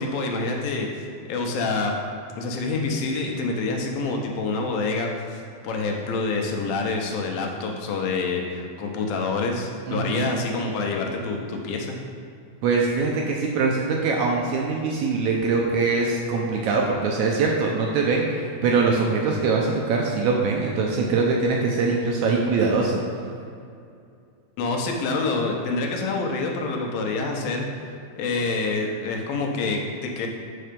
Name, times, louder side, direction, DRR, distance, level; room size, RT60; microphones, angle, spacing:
voice 1, 0.0-1.9 2.4-12.0 24.6-27.7 28.2-30.3, left 3 dB, 90° left, 2 dB, 2.7 m, -27 dB
voice 2, 9.9-10.3 12.6-23.0, right 4 dB, 75° right, -1 dB, 1.8 m, -23 dB
7.7 x 5.6 x 5.2 m, 2.4 s
omnidirectional pair, 4.0 m